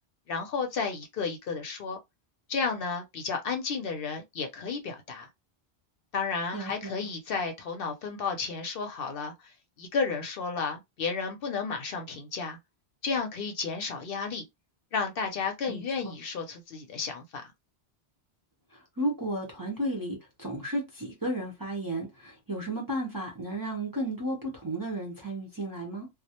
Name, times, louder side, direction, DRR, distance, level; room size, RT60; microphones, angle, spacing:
voice 1, 0.3-2.0 2.5-5.3 6.1-9.3 9.8-12.6 13.0-14.4 14.9-17.5, left 5 dB, 60° left, 0.7 m, -32 dB
voice 2, 6.5-7.1 15.7-16.1 18.7-26.1, right 1 dB, 25° right, 0.6 m, -33 dB
2.3 x 2.0 x 2.8 m
omnidirectional pair, 1.1 m